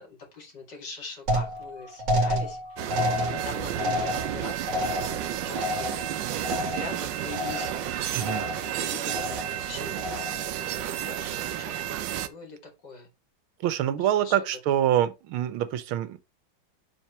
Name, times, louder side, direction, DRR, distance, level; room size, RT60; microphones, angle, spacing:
voice 1, 0.0-2.6 2.9-6.0 6.6-13.1 14.0-14.5, left 4 dB, 60° left, 2.7 m, -43 dB
sound 1, 1.3-7.0 7.3-7.9 8.2-8.8 9.1-9.6 10.0-10.5, left 1 dB, 40° right, 1.8 m, -30 dB
sound 2, 2.8-12.3, right 11 dB, 70° right, 1.2 m, -32 dB
voice 2, 13.6-16.2, right 11 dB, 90° right, 1.6 m, -25 dB
7.3 x 5.4 x 3.1 m
omnidirectional pair, 2.2 m